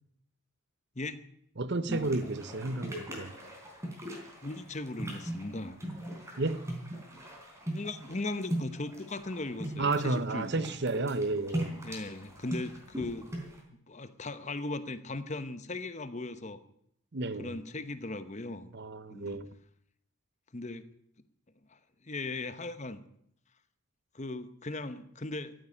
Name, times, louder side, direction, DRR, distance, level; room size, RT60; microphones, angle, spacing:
voice 1, 1.6-3.3 6.4-6.6 9.8-11.7 17.1-17.6 18.7-19.5, right 2 dB, 50° right, 0.8 m, -32 dB
sound 1, 1.9-13.6, right 1 dB, 15° right, 3.8 m, -39 dB
voice 2, 4.4-5.8 7.7-10.7 11.8-13.3 13.7-16.6 17.4-18.7 19.1-19.4 20.5-20.9 21.7-21.8 22.0-23.0 24.1-25.5, left 2 dB, 30° left, 1.0 m, -38 dB
14.0 x 9.3 x 9.8 m
head